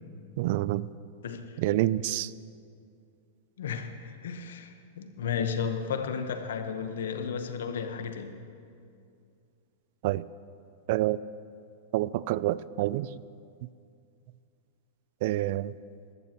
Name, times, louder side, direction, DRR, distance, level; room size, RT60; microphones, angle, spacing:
voice 1, 0.4-0.9 1.6-2.3 10.0-10.3 10.9-11.2 11.9-13.2 15.2-15.7, right 15 dB, 60° right, 19 dB, 0.3 m, -27 dB
voice 2, 3.6-8.4, left 6 dB, 80° left, 8 dB, 1.1 m, -33 dB
20.5 x 14.0 x 3.0 m, 2.4 s
hypercardioid pair, 120°, 0 cm